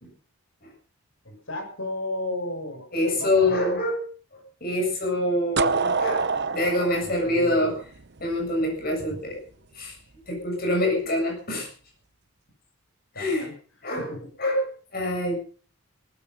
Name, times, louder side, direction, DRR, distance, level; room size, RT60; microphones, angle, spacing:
voice 1, 1.2-3.7 5.6-5.7 7.0-7.8 9.1-9.2 13.1-13.5 14.0-14.3, left 1 dB, 60° left, 4 dB, 7.1 m, -34 dB
voice 2, 2.9-4.0 4.6-6.2 6.5-7.7 8.2-9.4 9.7-9.9 10.3-11.7 13.2-13.5 13.8-14.1 14.4-15.3, left 1 dB, 40° left, 1 dB, 7.7 m, -25 dB
sound 1, 5.6-8.4, right 4 dB, 50° right, 0.9 m, -26 dB
19.0 x 13.5 x 5.6 m, 0.43 s
head